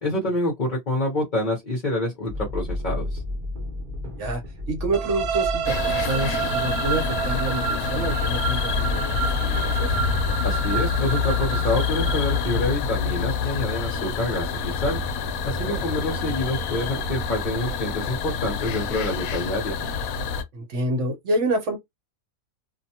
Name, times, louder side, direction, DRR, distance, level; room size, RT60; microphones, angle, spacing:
voice 1, 0.0-3.2 10.4-15.0 15.5-19.7, left 1 dB, 40° left, 0.7 m, -27 dB
sound 1, 2.3-12.8, left 2 dB, 35° right, 0.9 m, -33 dB
voice 2, 4.7-9.9 15.6-15.8 20.5-21.8, right 2 dB, 55° right, 1.1 m, -28 dB
sound 2, 4.9-12.7, right 8 dB, 85° right, 1.1 m, -29 dB
sound 3, 5.7-20.4, left 6 dB, 75° left, 1.0 m, -27 dB
2.6 x 2.2 x 2.7 m
omnidirectional pair, 1.6 m